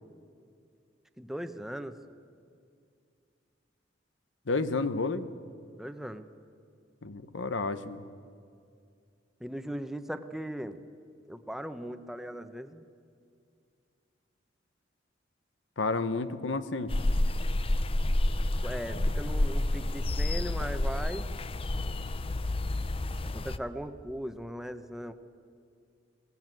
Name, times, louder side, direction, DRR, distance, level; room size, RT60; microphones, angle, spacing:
voice 1, 1.2-2.0 5.8-6.3 9.4-10.8 11.3-12.8 18.6-21.3 23.2-25.1, equal, ahead, 9 dB, 0.8 m, -38 dB
voice 2, 4.5-5.3 7.0-8.0 15.8-16.9, left 3 dB, 85° left, 13 dB, 1.0 m, -31 dB
sound 1, 16.9-23.6, left 1 dB, 30° left, 0.6 m, -29 dB
20.0 x 17.5 x 9.1 m, 2.3 s
head